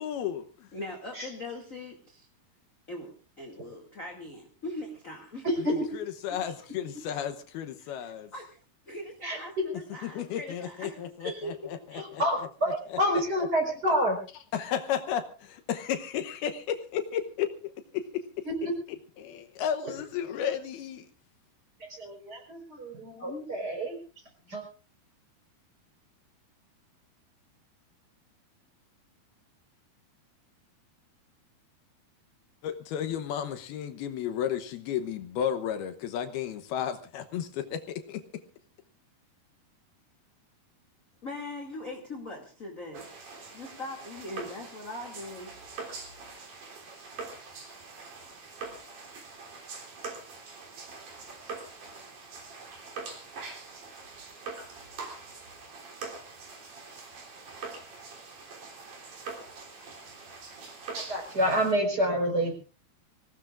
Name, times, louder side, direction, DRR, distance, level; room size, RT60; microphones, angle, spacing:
voice 1, 0.0-0.7 5.9-8.3 10.0-12.2 12.9-13.0 14.5-18.2 19.2-21.1 32.6-38.4, left 9 dB, 75° left, 8 dB, 2.9 m, -33 dB
voice 2, 0.7-2.3 2.9-5.5 7.8-7.9 8.3-8.6 8.9-11.8 41.2-43.1 43.5-45.5 45.9-46.0, left 1 dB, 25° left, 0 dB, 2.1 m, -40 dB
voice 3, 11.9-14.2 18.4-18.5 21.9-24.0 24.5-24.6 60.9-62.5, equal, 25° right, 3 dB, 5.1 m, -28 dB
sound 1, 42.9-61.7, right 4 dB, 55° right, 4.8 m, -43 dB
25.0 x 17.5 x 2.5 m, 0.36 s
omnidirectional pair, 4.6 m